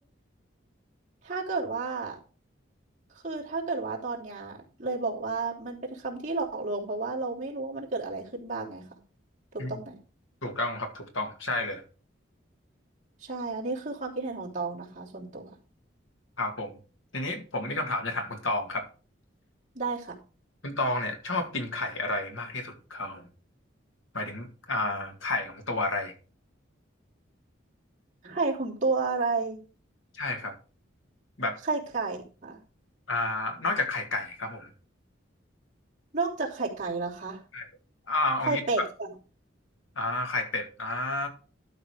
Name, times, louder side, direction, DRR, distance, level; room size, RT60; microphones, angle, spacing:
voice 1, 1.2-2.2 3.1-8.8 9.5-9.9 13.2-15.5 19.7-20.2 28.2-29.6 31.6-32.6 36.1-37.4 38.5-39.1, right 3 dB, 40° right, -4 dB, 3.0 m, -31 dB
voice 2, 10.4-11.8 16.4-16.8 17.1-18.9 20.6-23.3 24.1-26.1 30.1-30.6 31.4-31.6 33.1-34.7 37.5-37.7 38.1-38.6 40.0-41.3, left 2 dB, 85° left, 5 dB, 2.1 m, -31 dB
12.5 x 5.2 x 4.9 m, 0.36 s
head